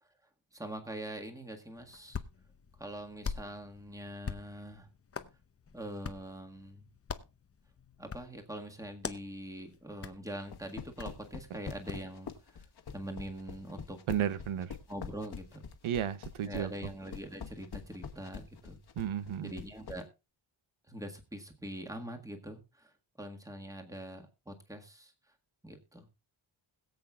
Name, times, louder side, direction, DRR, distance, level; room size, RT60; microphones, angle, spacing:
voice 1, 0.5-2.2 2.8-4.9 5.7-6.8 8.0-12.7 12.9-14.0 14.9-15.6 16.4-18.8 19.4-20.1 20.9-25.1 25.6-26.1, right 1 dB, 5° right, 4 dB, 1.7 m, -43 dB
Hands, 1.8-12.1, left 6 dB, 30° left, 0.7 m, -45 dB
sound 1, 10.4-20.0, left 6 dB, 50° left, 1.4 m, -44 dB
voice 2, 14.1-14.8 15.8-16.7 19.0-19.5, right 10 dB, 80° right, 14 dB, 0.8 m, -33 dB
21.0 x 7.8 x 2.3 m, 0.27 s
wide cardioid pair, 140°, 48 cm